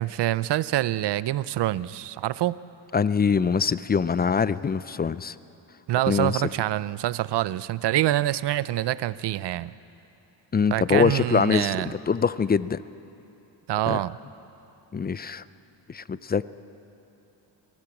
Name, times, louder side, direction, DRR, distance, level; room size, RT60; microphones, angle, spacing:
voice 1, 0.0-2.6 5.9-9.7 10.7-11.9 13.7-14.2, right 14 dB, 60° right, 17 dB, 0.6 m, -26 dB
voice 2, 2.9-5.3 6.1-6.4 10.5-12.8 13.9-14.0 14.9-15.4 15.9-16.5, left 6 dB, 20° left, 16 dB, 0.4 m, -24 dB
23.0 x 16.5 x 7.1 m, 2.8 s
cardioid pair, 85°, 47 cm